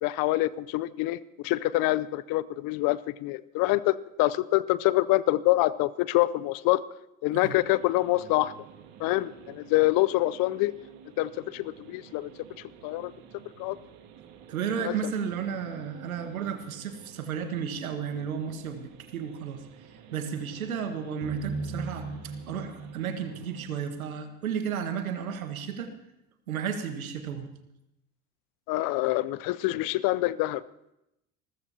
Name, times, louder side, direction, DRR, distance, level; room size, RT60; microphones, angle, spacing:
voice 1, 0.0-6.8 7.2-8.5 9.0-10.7 11.2-12.3 12.8-13.1 13.6-13.8 14.8-15.1 28.7-30.6, left 18 dB, 55° left, 19 dB, 0.6 m, -26 dB
sound 1, 7.3-23.7, right 8 dB, 60° right, 1.8 m, -51 dB
voice 2, 14.5-19.6 20.1-25.9 26.5-27.5, right 7 dB, 85° right, 7 dB, 1.5 m, -33 dB
sound 2, 21.2-24.4, right 3 dB, 45° right, 4.4 m, -37 dB
26.5 x 14.0 x 2.8 m, 0.86 s
hypercardioid pair, 65°, 41 cm